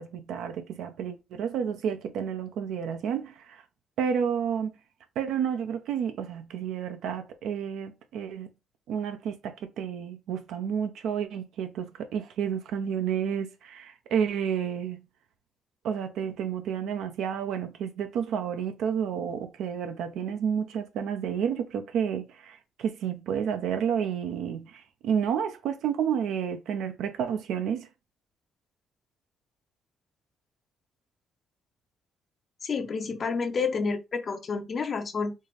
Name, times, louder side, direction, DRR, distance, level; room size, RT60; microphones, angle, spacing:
voice 1, 0.0-3.6 4.0-4.7 5.2-8.5 8.9-15.0 15.8-27.9, right 8 dB, 85° right, 0.5 m, -30 dB
voice 2, 32.6-35.3, left 5 dB, 45° left, 0.6 m, -29 dB
4.4 x 2.5 x 3.3 m
cardioid pair, 90°, 0 cm